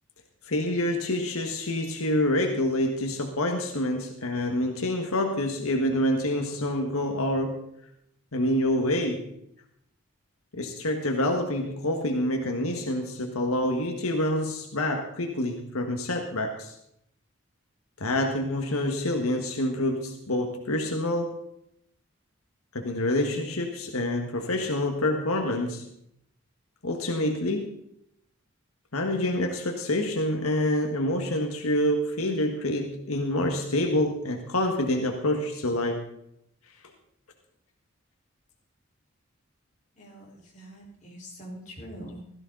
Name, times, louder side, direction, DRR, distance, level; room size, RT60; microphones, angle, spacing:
voice 1, 0.5-7.6 8.3-9.2 10.5-16.7 18.0-21.4 22.7-25.8 26.8-27.7 28.9-36.0, left 1 dB, 85° left, 3 dB, 1.6 m, -27 dB
voice 2, 40.0-42.2, equal, 35° left, -3 dB, 4.5 m, -43 dB
16.5 x 14.0 x 4.0 m, 0.74 s
head